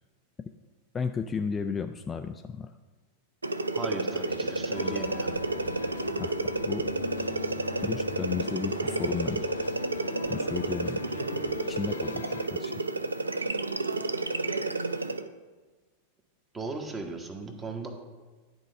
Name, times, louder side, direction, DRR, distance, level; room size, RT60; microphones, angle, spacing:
voice 1, 0.9-2.7 6.2-6.8 7.8-9.5 10.3-11.2 11.7-12.9, left 6 dB, 20° left, 7 dB, 0.4 m, -34 dB
sound 1, 3.4-15.3, right 3 dB, 80° right, 0.4 m, -31 dB
voice 2, 3.7-5.4 16.5-17.9, right 3 dB, 20° right, 4 dB, 1.3 m, -37 dB
sound 2, 4.7-12.5, left 6 dB, 65° left, 0.6 m, -40 dB
11.0 x 4.7 x 6.5 m, 1.3 s
figure-of-eight pair, 90°, 0 cm